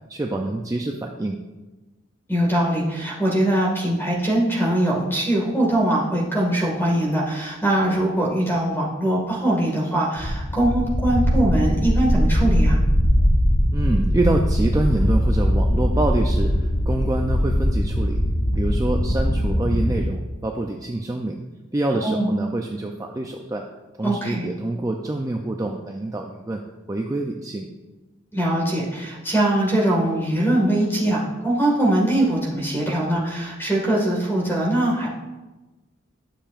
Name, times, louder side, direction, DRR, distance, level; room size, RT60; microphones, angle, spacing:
voice 1, 0.1-1.4 13.7-18.2 18.6-21.4 21.7-23.6 24.0-26.6 26.9-27.7, right 2 dB, 15° right, 2 dB, 0.4 m, -26 dB
voice 2, 2.3-12.8 22.0-22.3 24.0-24.5 28.3-35.1, right 1 dB, 10° left, -2 dB, 1.8 m, -22 dB
sound 1, 10.2-20.0, equal, 60° left, 1.3 m, -20 dB
11.5 x 6.8 x 2.5 m, 1.1 s
head